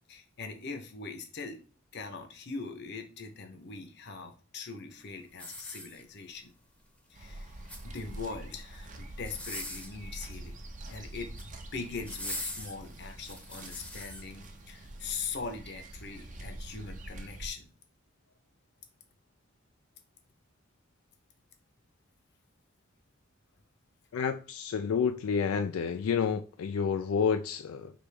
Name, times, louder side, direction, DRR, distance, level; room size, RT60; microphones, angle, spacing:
voice 1, 0.1-1.6 1.9-6.5 7.1-10.6 10.9-17.7, left 4 dB, 55° left, 0.8 m, -41 dB
sound 1, 5.3-6.4 7.5-8.2 9.2-10.0 11.1-11.5 12.0-14.2 14.8-14.9, left 1 dB, 5° left, 0.7 m, -41 dB
sound 2, 7.1-17.5, right 1 dB, 40° right, 0.7 m, -45 dB
voice 2, 24.1-27.9, left 6 dB, 90° left, 0.4 m, -29 dB
5.0 x 3.0 x 3.4 m
head